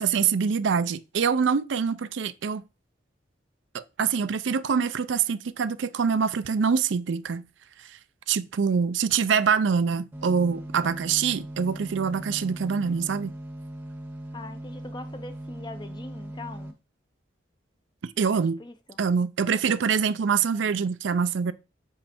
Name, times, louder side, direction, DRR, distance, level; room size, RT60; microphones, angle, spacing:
voice 1, 0.0-2.6 3.7-7.4 8.3-13.3 18.0-18.6 19.0-21.5, right 6 dB, 75° right, 0.4 m, -25 dB
sound 1, 10.1-16.7, right 1 dB, 10° right, 0.8 m, -39 dB
voice 2, 14.3-16.7 18.6-19.0, left 2 dB, 25° left, 0.6 m, -41 dB
7.7 x 3.2 x 4.3 m
head